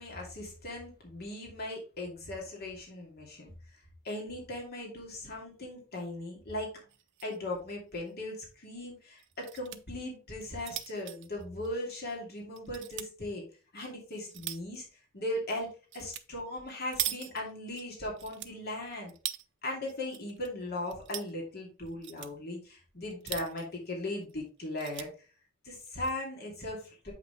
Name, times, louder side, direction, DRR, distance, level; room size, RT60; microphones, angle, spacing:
voice 1, 0.0-3.5 4.0-6.7 7.2-13.4 13.7-14.8 15.1-15.7 15.9-19.1 19.6-25.1 25.6-27.1, left 1 dB, 50° left, -2 dB, 2.6 m, -38 dB
sound 1, 6.9-7.4 7.7-7.8 8.1-8.2 9.2-9.8 10.3-12.1 12.6-13.1 13.7-14.8 15.9-16.2 16.5-17.8 18.2-19.4 19.9-20.5 20.8-21.3 21.9-22.3 23.0-23.8 24.2-24.3 24.6-25.1 25.8-26.1, right 13 dB, 60° right, 0.6 m, -40 dB
8.3 x 5.7 x 3.3 m, 0.36 s
head